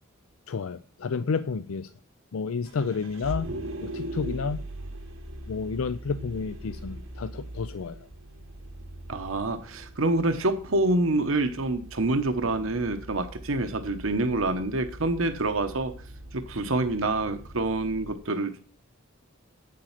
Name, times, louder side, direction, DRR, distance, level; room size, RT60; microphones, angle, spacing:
voice 1, 0.5-1.9 2.3-3.5 3.8-4.6 5.5-8.0, left 5 dB, 85° left, 0.5 m, -30 dB
Vehicle, 2.7-18.1, right 1 dB, 90° right, 1.6 m, -41 dB
voice 2, 9.1-15.9 16.3-18.6, right 2 dB, 75° right, 1.0 m, -27 dB
8.8 x 7.6 x 5.7 m
head